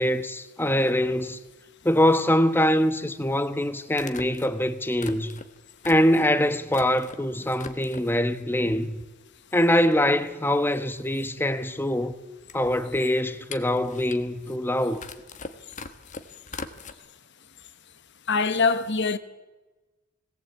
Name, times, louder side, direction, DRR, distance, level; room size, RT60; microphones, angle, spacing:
voice 1, 0.0-1.4 1.8-5.4 5.8-9.0 9.5-12.2 12.5-15.0, left 1 dB, 10° left, 1.1 m, -23 dB
sound 1, 3.0-3.1 3.9-7.2 7.5-8.2 8.7-9.4 9.6-9.7 9.9-16.9, left 4 dB, 35° left, 1.3 m, -42 dB
voice 2, 18.3-19.2, left 4 dB, 55° left, 1.3 m, -23 dB
21.5 x 18.0 x 8.3 m
head